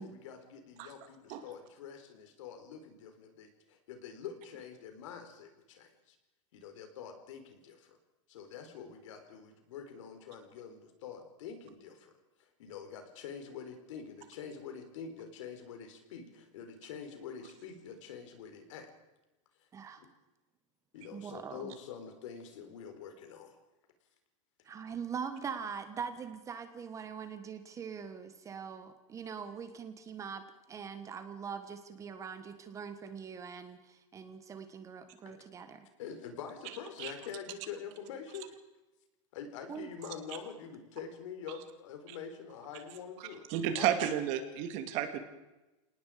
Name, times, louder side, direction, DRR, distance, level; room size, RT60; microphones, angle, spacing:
voice 1, 0.0-6.2 6.5-8.0 8.3-12.1 12.4-18.9 20.0-20.1 20.9-23.6 35.2-38.5 39.3-43.5 43.8-44.0, left 7 dB, 70° left, 6 dB, 4.3 m, -46 dB
voice 2, 21.1-21.7 24.6-35.9 39.7-39.9, right 6 dB, 20° right, 9 dB, 1.3 m, -42 dB
voice 3, 43.5-45.2, right 10 dB, 45° right, 7 dB, 2.5 m, -32 dB
27.5 x 19.0 x 5.1 m, 1.0 s
supercardioid pair, 150°, 17 cm